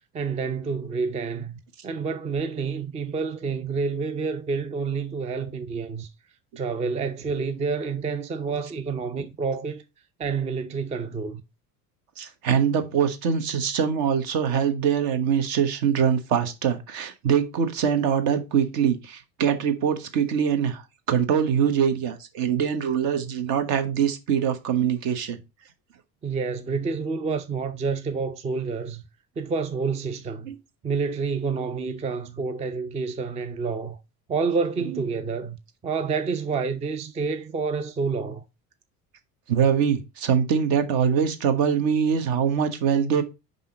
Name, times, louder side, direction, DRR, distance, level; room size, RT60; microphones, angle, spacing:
voice 1, 0.1-6.1 6.6-9.8 10.2-11.4 26.2-29.0 29.4-30.5 30.8-34.0 34.3-35.6 35.8-38.4, right 5 dB, 15° right, 0.5 m, -28 dB
voice 2, 12.2-20.8 21.1-25.4 30.5-30.6 34.9-35.0 39.5-43.2, right 7 dB, 50° right, 1.3 m, -23 dB
5.5 x 5.2 x 3.7 m
figure-of-eight pair, 65°, 47 cm